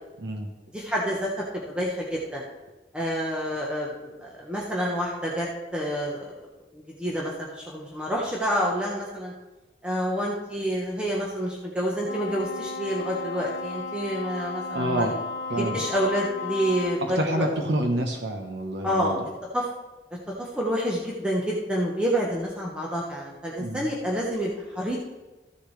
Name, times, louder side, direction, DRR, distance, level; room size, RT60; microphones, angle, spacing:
voice 1, 0.7-2.4 2.9-9.3 9.8-15.1 15.5-17.5 18.8-19.1 19.5-19.7 20.4-25.0, equal, 5° right, -4 dB, 1.1 m, -28 dB
Wind instrument woodwind instrument, 12.0-17.1, left 4 dB, 85° left, 0.7 m, -34 dB
voice 2, 14.7-15.1 15.5-15.8 17.0-19.2 23.6-23.9, right 1 dB, 75° right, 3 dB, 1.0 m, -27 dB
14.5 x 6.8 x 3.3 m, 1.1 s
head